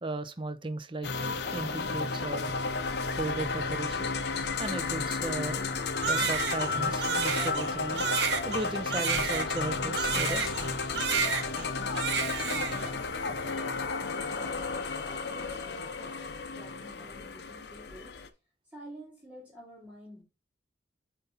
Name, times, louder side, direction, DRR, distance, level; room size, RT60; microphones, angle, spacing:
voice 1, 0.0-2.5 3.2-4.0 4.6-5.6 6.1-8.1 8.4-10.5, right 2 dB, 25° right, 0.7 m, -36 dB
sound 1, 1.0-18.3, left 4 dB, 65° left, 0.8 m, -33 dB
sound 2, 4.6-13.1, left 2 dB, 35° left, 1.0 m, -46 dB
Crying sobbing, 6.0-10.7 11.0-11.7 12.0-12.9, right 6 dB, 70° right, 1.1 m, -30 dB
voice 2, 12.4-14.7 15.0-18.2 18.7-20.2, equal, 5° right, 2.7 m, -50 dB
8.1 x 4.1 x 4.0 m
head